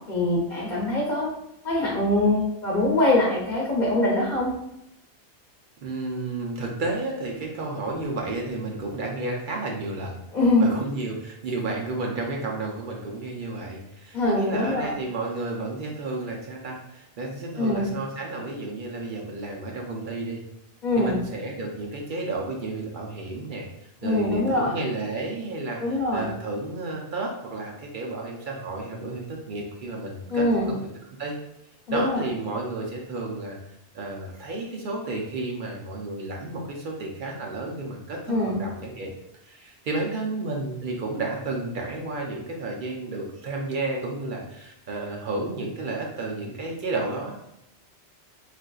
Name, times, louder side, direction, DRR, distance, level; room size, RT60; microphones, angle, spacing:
voice 1, 0.1-1.3 1.6-4.5 10.3-10.7 14.1-15.0 17.6-17.9 20.8-21.2 24.0-24.7 25.8-26.3 30.3-30.7 31.9-32.2 38.3-38.6, left 2 dB, 45° left, -6 dB, 0.8 m, -23 dB
voice 2, 5.8-10.2 10.6-20.4 21.0-30.8 31.2-31.4 31.9-33.6 33.9-39.1 39.4-47.3, right 2 dB, 55° right, 0 dB, 0.6 m, -32 dB
3.7 x 2.5 x 2.3 m, 0.82 s
omnidirectional pair, 1.2 m